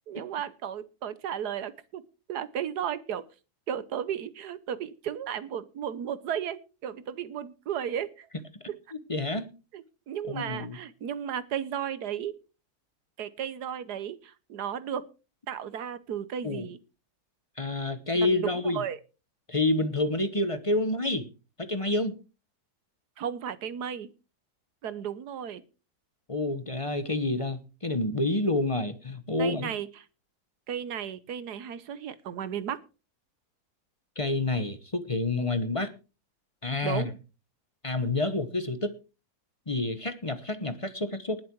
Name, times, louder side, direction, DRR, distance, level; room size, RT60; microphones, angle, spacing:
voice 1, 0.1-2.0 2.3-3.2 3.7-8.3 8.7-8.8 9.7-12.4 13.2-15.1 15.5-16.8 18.1-19.0 23.2-24.1 24.8-25.6 29.4-30.0 30.7-32.8 36.8-37.1, right 9 dB, 80° right, 15 dB, 1.5 m, -34 dB
voice 2, 8.9-9.4 10.3-10.8 16.4-16.7 17.6-18.8 19.5-21.3 21.6-22.2 26.3-29.7 34.2-35.9 36.6-37.1 37.8-38.9 39.7-41.4, left 2 dB, 25° left, 11 dB, 0.9 m, -28 dB
19.5 x 7.5 x 4.6 m, 0.33 s
omnidirectional pair, 1.7 m